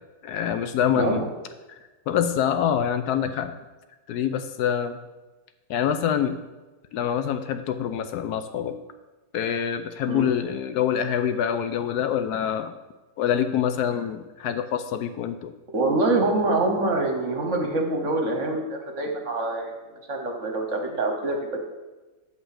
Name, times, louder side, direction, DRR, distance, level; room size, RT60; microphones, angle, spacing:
voice 1, 0.2-1.2 1.7-1.8 2.1-3.6 4.1-5.0 5.7-6.4 6.9-8.8 9.3-12.7 13.2-15.5, left 9 dB, 70° left, 9 dB, 0.9 m, -25 dB
voice 2, 0.9-1.3 10.1-10.3 15.7-19.7 20.1-21.6, right 2 dB, 50° right, 3 dB, 1.1 m, -25 dB
7.5 x 5.5 x 6.5 m, 1.2 s
omnidirectional pair, 2.1 m